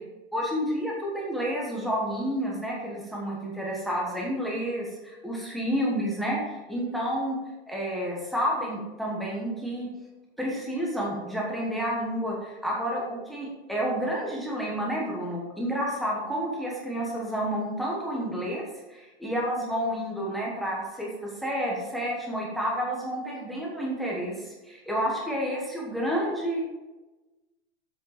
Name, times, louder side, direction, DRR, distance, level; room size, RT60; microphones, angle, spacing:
voice 1, 0.3-7.4 7.7-9.9 10.4-18.6 18.9-26.7, equal, ahead, -3 dB, 1.1 m, -30 dB
7.6 x 6.5 x 4.9 m, 1.1 s
supercardioid pair, 170°, 34 cm